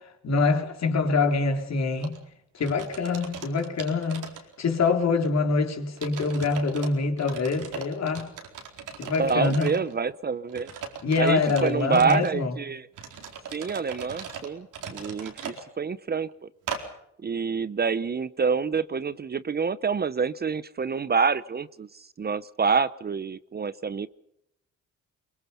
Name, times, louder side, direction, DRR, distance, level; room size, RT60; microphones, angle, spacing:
voice 1, 0.0-2.2 2.5-8.3 9.0-9.8 11.0-12.6, left 4 dB, 60° left, 3.7 m, -25 dB
sound 1, 2.0-2.2 2.6-4.9 5.2-5.3 6.0-6.9 7.2-9.9 10.5-12.3 12.9-15.6 16.7-16.8, right 6 dB, 80° right, 4.4 m, -39 dB
voice 2, 9.2-10.7 11.2-12.9 13.5-16.3 17.2-21.9 22.2-24.1, right 5 dB, 30° right, 0.7 m, -27 dB
23.5 x 23.0 x 5.6 m
cardioid pair, 85°, 31 cm